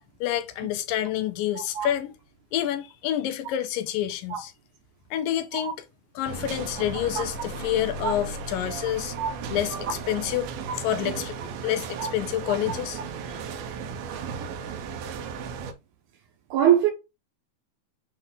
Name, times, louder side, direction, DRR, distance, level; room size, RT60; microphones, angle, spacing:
voice 1, 0.2-2.1 2.5-4.5 5.1-5.8 6.2-9.1 9.5-10.5 10.8-11.4 11.6-13.0 13.3-13.4, left 12 dB, 80° left, 2.3 m, -28 dB
voice 2, 1.6-1.9 4.3-4.4 5.6-5.7 7.2-7.3 8.0-8.1 9.2-9.3 10.7-10.8 12.0-12.1 16.5-16.9, right 10 dB, 70° right, 2.1 m, -23 dB
sound 1, 6.3-15.7, right 5 dB, 90° right, 2.7 m, -35 dB
7.8 x 3.7 x 3.6 m
omnidirectional pair, 4.1 m